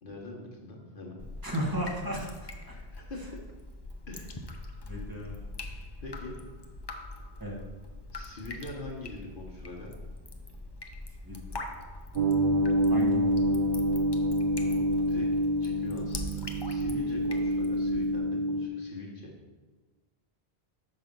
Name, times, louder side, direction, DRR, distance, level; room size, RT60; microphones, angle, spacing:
voice 1, 0.0-1.2 2.7-3.2 4.1-4.7 6.0-6.4 8.1-9.9 14.6-19.3, left 2 dB, 55° left, -1 dB, 1.2 m, -43 dB
Drip, 1.2-18.2, left 2 dB, 30° left, 0.5 m, -43 dB
voice 2, 1.4-2.5 4.8-5.5 7.4-7.6 11.2-11.6 12.9-13.4, right 1 dB, 20° right, -2 dB, 1.4 m, -34 dB
sound 1, 12.2-18.7, equal, 55° right, 0.6 m, -27 dB
6.1 x 5.8 x 5.2 m, 1.3 s
omnidirectional pair, 1.1 m